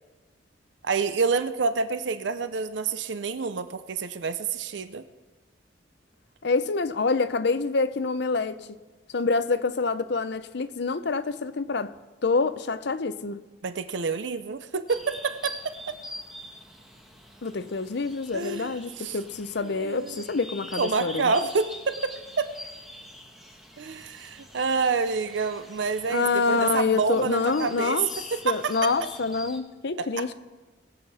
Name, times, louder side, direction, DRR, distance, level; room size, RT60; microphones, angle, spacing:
voice 1, 0.8-5.0 13.6-15.6 15.9-16.0 18.3-18.7 19.0-19.2 19.6-20.2 20.8-22.5 23.8-28.0 28.3-28.7 30.0-30.3, right 4 dB, 70° right, 0.6 m, -28 dB
voice 2, 6.4-8.7 9.1-11.9 12.2-13.4 17.4-21.3 26.1-28.1 28.4-30.3, left 4 dB, 65° left, 0.7 m, -26 dB
sound 1, 14.9-29.6, left 1 dB, ahead, 1.5 m, -44 dB
21.0 x 7.9 x 4.2 m
head